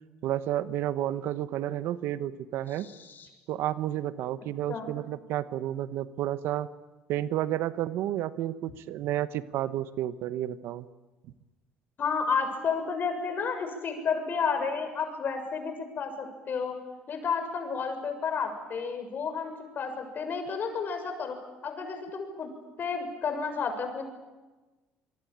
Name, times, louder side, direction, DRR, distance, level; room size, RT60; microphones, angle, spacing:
voice 1, 0.2-2.9 3.5-6.7 7.1-10.9, right 12 dB, 70° right, 14 dB, 1.1 m, -31 dB
voice 2, 2.7-3.3 4.7-4.9 12.0-16.8 17.1-21.4 21.6-22.5 22.8-24.0, left 5 dB, 50° left, 6 dB, 6.7 m, -31 dB
26.0 x 23.0 x 8.9 m, 1.2 s
supercardioid pair, 70°, 4 cm